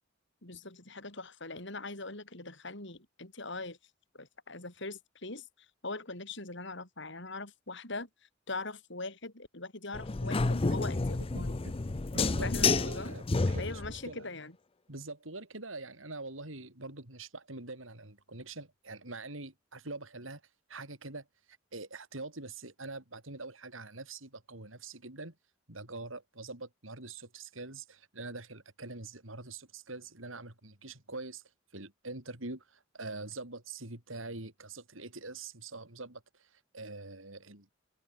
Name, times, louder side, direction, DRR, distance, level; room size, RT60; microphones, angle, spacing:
voice 1, 0.4-3.8 4.1-5.5 5.8-8.1 8.5-11.6 12.4-13.1 13.6-14.6, left 3 dB, 65° left, 7.4 m, -41 dB
sound 1, 9.9-14.0, left 3 dB, 30° left, 0.6 m, -30 dB
voice 2, 11.3-11.7 12.1-12.5 12.8-14.3 14.9-20.4 20.7-21.3 21.7-25.3 25.7-31.4 31.7-37.7, right 3 dB, 85° right, 5.2 m, -44 dB
head